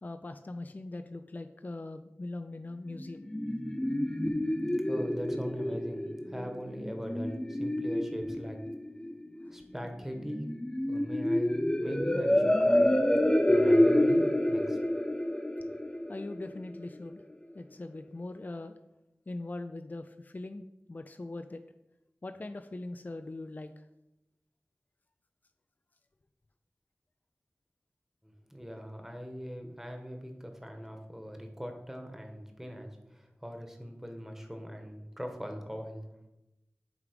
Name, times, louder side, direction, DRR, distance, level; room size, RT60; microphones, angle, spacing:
voice 1, 0.0-3.3 3.8-3.9 16.1-17.2 17.5-18.8 19.3-20.6 20.9-21.6 22.2-23.7, left 2 dB, 35° left, 8 dB, 0.4 m, -41 dB
sound 1, 2.9-16.9, left 1 dB, 15° left, 0.9 m, -28 dB
voice 2, 4.8-8.6 9.5-10.5 10.9-13.1 13.5-14.8 15.6-15.7 28.2-36.3, equal, 5° right, 4 dB, 1.2 m, -41 dB
8.2 x 3.6 x 5.1 m, 0.93 s
wide cardioid pair, 50°, 5 cm